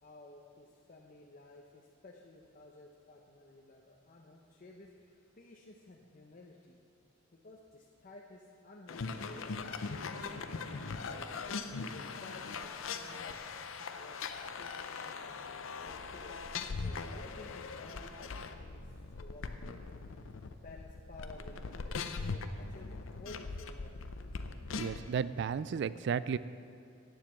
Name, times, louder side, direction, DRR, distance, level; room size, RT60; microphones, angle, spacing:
voice 1, 0.0-6.8 7.3-9.8 10.3-11.2 11.8-15.4 15.8-16.4 16.8-20.1 20.5-24.1, left 2 dB, 40° left, -1 dB, 0.7 m, -54 dB
sound 1, 8.9-25.1, left 4 dB, 85° left, 0.6 m, -41 dB
voice 2, 24.7-26.4, right 6 dB, 60° right, 16 dB, 0.3 m, -33 dB
9.0 x 7.4 x 7.6 m, 2.6 s
head